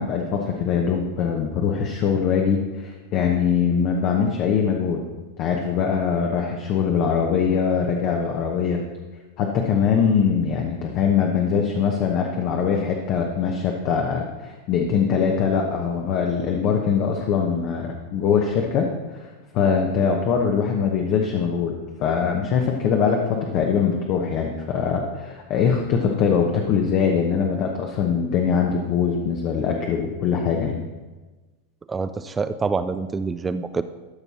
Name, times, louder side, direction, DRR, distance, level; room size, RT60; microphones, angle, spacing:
voice 1, 0.0-5.0 5.4-8.8 9.4-19.3 19.5-21.7 22.0-30.8, left 6 dB, 45° left, 1 dB, 1.0 m, -22 dB
voice 2, 31.9-33.8, right 4 dB, 15° right, 12 dB, 0.3 m, -26 dB
13.0 x 5.5 x 4.3 m, 1.2 s
supercardioid pair, 135°, 0 cm